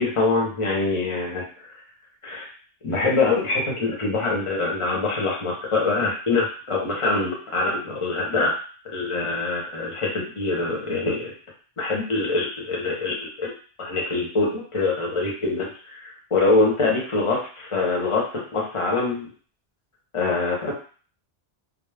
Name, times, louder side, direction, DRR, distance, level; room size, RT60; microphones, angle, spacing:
voice 1, 0.0-1.7 2.2-2.5 2.8-8.5 8.9-11.3 11.8-13.5 13.8-19.3 20.1-20.7, left 3 dB, 35° left, -3 dB, 0.7 m, -24 dB
2.3 x 2.0 x 3.3 m, 0.40 s
omnidirectional pair, 1.1 m